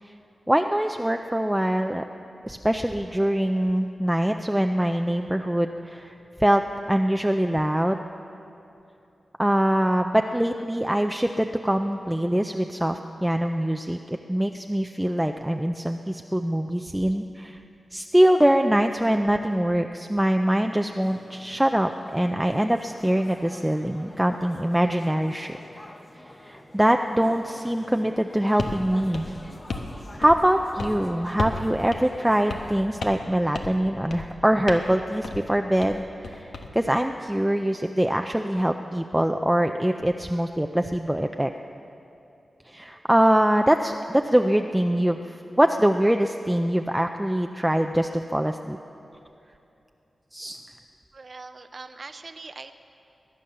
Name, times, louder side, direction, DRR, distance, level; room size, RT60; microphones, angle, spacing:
voice 1, 0.5-2.0 2.4-6.1 6.4-6.6 6.9-8.0 9.4-17.6 17.9-25.6 26.4-29.3 30.2-41.5 42.7-48.8 50.3-50.6, right 1 dB, 10° right, 5 dB, 0.5 m, -23 dB
sound 1, 21.0-32.7, left 1 dB, 25° left, 1.2 m, -46 dB
sound 2, 28.6-28.8 29.1-29.9 30.2-30.5 30.8-31.0 31.4-31.6 31.9-32.0 32.5-32.7 33.0-33.3 33.5-33.8 34.1-34.3 34.7-34.9 35.2-35.4 35.8-36.7, left 3 dB, 90° left, 1.2 m, -33 dB
voice 2, 51.1-52.7, right 3 dB, 50° right, 9 dB, 0.6 m, -41 dB
22.0 x 9.8 x 6.8 m, 2.8 s
wide cardioid pair, 85°, 0 cm